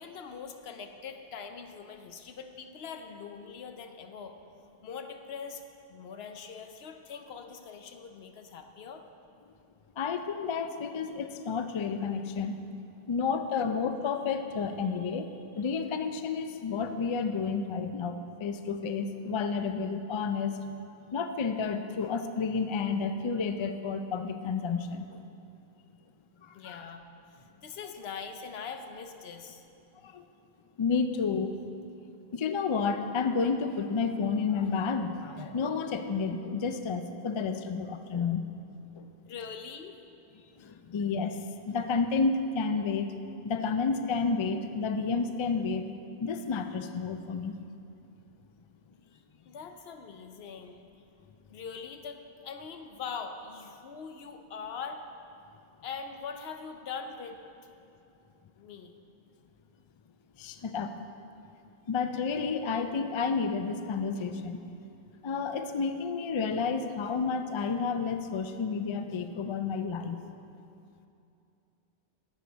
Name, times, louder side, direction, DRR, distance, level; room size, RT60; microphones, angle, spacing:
voice 1, 0.0-4.4 4.8-5.6 5.9-9.1 26.5-27.0 27.6-29.6 39.3-40.0 40.3-40.6 49.1-49.2 49.5-50.8 51.5-55.0 55.8-57.4 58.6-58.9, left 6 dB, 75° left, 7 dB, 0.9 m, -42 dB
voice 2, 10.0-12.6 13.1-15.3 15.6-20.5 21.1-25.2 26.4-26.8 30.0-30.2 30.8-31.5 32.3-38.5 39.0-39.1 40.6-41.4 41.6-43.1 43.4-45.9 46.2-47.5 60.4-60.9 61.9-64.6 65.2-70.2, left 5 dB, 50° left, 8 dB, 0.3 m, -31 dB
11.5 x 8.1 x 4.1 m, 2.7 s
omnidirectional pair, 1.1 m